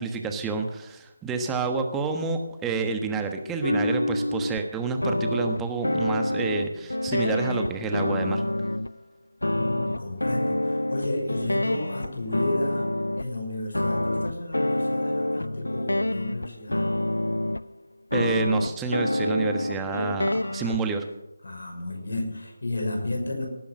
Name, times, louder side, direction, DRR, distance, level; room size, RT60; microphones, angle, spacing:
voice 1, 0.0-8.4 18.1-21.0, right 4 dB, 10° right, 5 dB, 1.3 m, -29 dB
sound 1, 3.6-4.7 5.0-8.9 9.4-13.3 13.7-17.7 18.1-20.8, left 1 dB, 90° left, 0.4 m, -27 dB
voice 2, 9.5-12.9 13.1-16.9 21.4-23.5, left 2 dB, 70° left, 3 dB, 6.1 m, -32 dB
18.5 x 10.0 x 6.4 m, 0.94 s
figure-of-eight pair, 160°, 0 cm